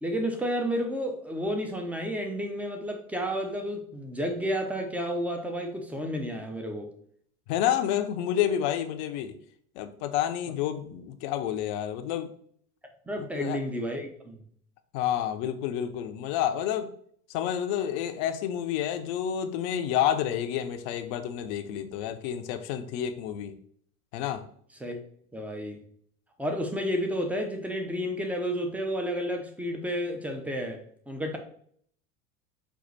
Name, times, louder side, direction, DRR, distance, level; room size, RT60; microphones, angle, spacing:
voice 1, 0.0-6.9 13.1-14.4 24.8-25.0 25.3-25.8 26.4-31.4, equal, 5° right, 4 dB, 0.6 m, -31 dB
voice 2, 7.5-9.3 9.8-12.3 13.2-13.6 14.9-16.9 17.3-23.6 24.1-24.4, left 10 dB, 50° left, 8 dB, 0.6 m, -29 dB
4.5 x 2.4 x 3.9 m, 0.62 s
hypercardioid pair, 85°, 43 cm